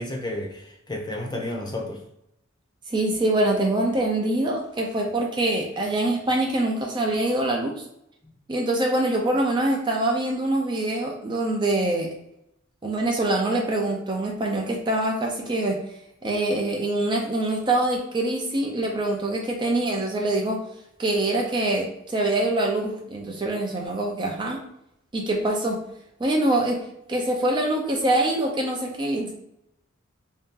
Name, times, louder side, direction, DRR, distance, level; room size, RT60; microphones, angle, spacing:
voice 1, 0.0-2.0, left 1 dB, 20° left, 0 dB, 0.7 m, -31 dB
voice 2, 2.9-7.7 8.5-12.1 12.8-15.8 16.2-20.6 21.0-24.6 25.1-25.8 26.2-29.3, right 1 dB, 25° right, 0 dB, 0.5 m, -24 dB
3.4 x 2.7 x 3.7 m, 0.80 s
head